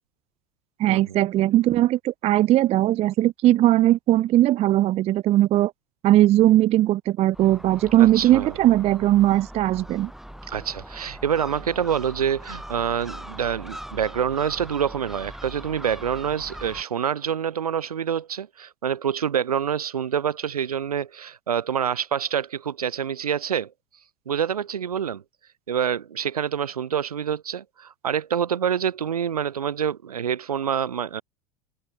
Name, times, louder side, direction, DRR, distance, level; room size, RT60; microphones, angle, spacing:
voice 1, 0.8-5.7 6.0-10.1, right 14 dB, 35° right, 0.4 m, -19 dB
Gull seagull, 7.3-16.8, equal, ahead, 2.9 m, -40 dB
voice 2, 8.0-8.5 10.5-23.7 24.3-25.2 25.7-31.2, right 8 dB, 85° right, 1.0 m, -26 dB
hypercardioid pair, 80°, 19 cm